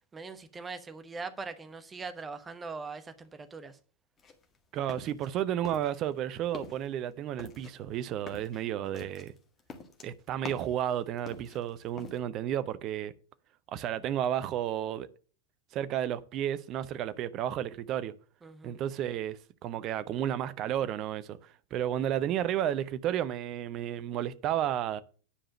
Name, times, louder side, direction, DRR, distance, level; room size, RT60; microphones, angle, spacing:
voice 1, 0.1-3.8 18.4-18.8, right 4 dB, 15° right, 1.1 m, -41 dB
sound 1, 4.2-5.3 5.6-6.2 6.4-6.9 7.4-10.8 11.2-12.2, left 4 dB, 20° left, 1.8 m, -46 dB
voice 2, 4.7-9.3 10.0-13.1 13.7-15.1 15.7-18.1 18.6-25.0, right 11 dB, 35° right, 0.7 m, -32 dB
9.9 x 5.0 x 7.0 m
figure-of-eight pair, 90°, 0 cm